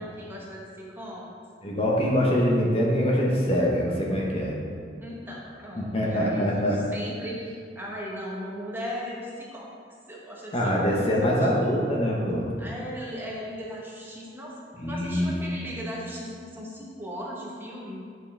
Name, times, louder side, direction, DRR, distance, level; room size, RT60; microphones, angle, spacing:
voice 1, 0.0-1.3 5.0-9.7 10.1-11.5 12.6-14.5 14.9-18.0, equal, 10° right, -4 dB, 1.1 m, -37 dB
voice 2, 1.6-4.6 5.8-6.8 10.5-12.5 14.8-15.3, equal, 35° left, -3 dB, 1.1 m, -24 dB
9.1 x 5.9 x 3.4 m, 2.2 s
head